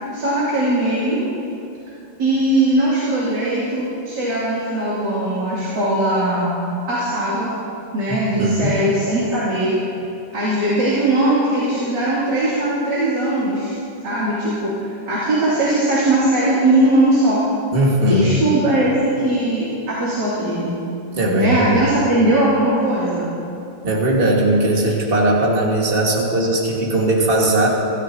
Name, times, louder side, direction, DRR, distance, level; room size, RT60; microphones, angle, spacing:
voice 1, 0.1-1.2 2.2-6.5 6.9-7.5 7.9-9.7 10.3-13.7 14.0-17.4 18.1-20.7 21.3-23.3, right 1 dB, 75° right, -9 dB, 3.6 m, -19 dB
voice 2, 8.4-8.8 17.7-18.4 21.1-21.8 23.8-27.7, right 1 dB, 30° right, -2 dB, 2.2 m, -18 dB
26.0 x 13.0 x 2.9 m, 2.9 s
omnidirectional pair, 1.9 m